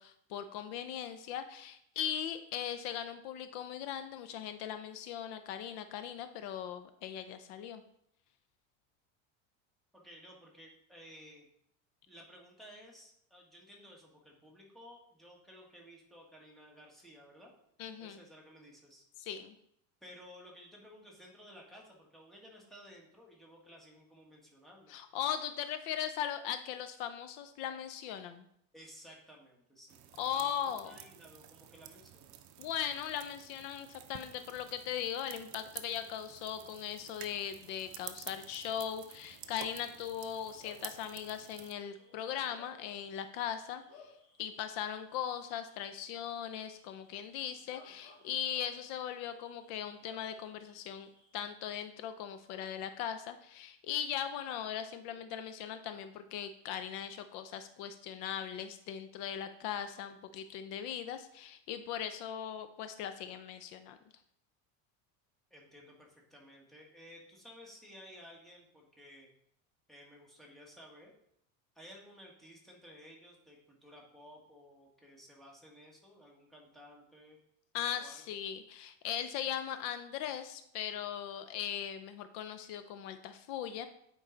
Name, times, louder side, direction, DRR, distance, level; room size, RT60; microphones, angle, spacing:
voice 1, 0.0-7.8 17.8-18.2 19.2-19.5 24.9-28.5 30.2-31.0 32.6-44.1 44.4-64.0 77.7-83.9, left 9 dB, 65° left, 9 dB, 0.7 m, -39 dB
voice 2, 9.9-11.5 12.1-17.5 18.0-19.0 20.0-24.9 28.7-30.0 30.3-32.4 65.5-69.3 69.9-71.1 71.7-77.4 77.9-78.4, equal, ahead, -2 dB, 1.6 m, -55 dB
sound 1, 29.9-41.7, right 11 dB, 45° right, 0.6 m, -51 dB
Bark / Cricket, 38.4-51.7, left 4 dB, 40° left, 2.5 m, -63 dB
8.8 x 4.7 x 3.9 m, 0.73 s
cardioid pair, 145°, 40 cm